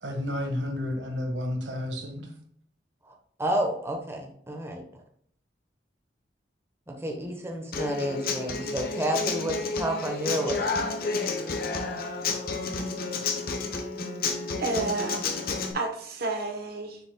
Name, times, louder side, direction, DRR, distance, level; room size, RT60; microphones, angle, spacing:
voice 1, 0.0-2.3, left 1 dB, 80° right, 3 dB, 1.4 m, -31 dB
voice 2, 3.4-4.8 6.9-10.7, right 1 dB, 15° right, 2 dB, 1.0 m, -30 dB
Human voice / Acoustic guitar, 7.7-15.7, left 4 dB, 55° left, 1.0 m, -30 dB
voice 3, 14.6-15.4 15.7-17.0, right 2 dB, 60° right, 3 dB, 1.0 m, -30 dB
7.1 x 6.7 x 2.2 m, 0.64 s
head